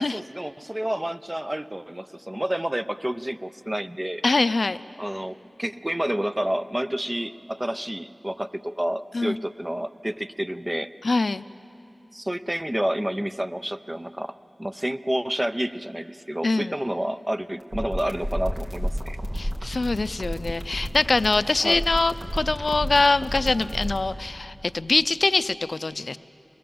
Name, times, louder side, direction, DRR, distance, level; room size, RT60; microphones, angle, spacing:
voice 1, 0.0-4.2 5.0-11.2 12.1-19.2 21.6-21.8, right 1 dB, 20° right, 12 dB, 0.5 m, -29 dB
voice 2, 4.2-4.8 9.1-9.4 11.0-11.4 16.4-16.7 19.3-26.2, left 3 dB, 70° left, 14 dB, 0.4 m, -23 dB
sound 1, 17.6-24.0, equal, 60° right, 3.0 m, -30 dB
23.5 x 20.0 x 7.7 m, 2.8 s
wide cardioid pair, 60°, 0 cm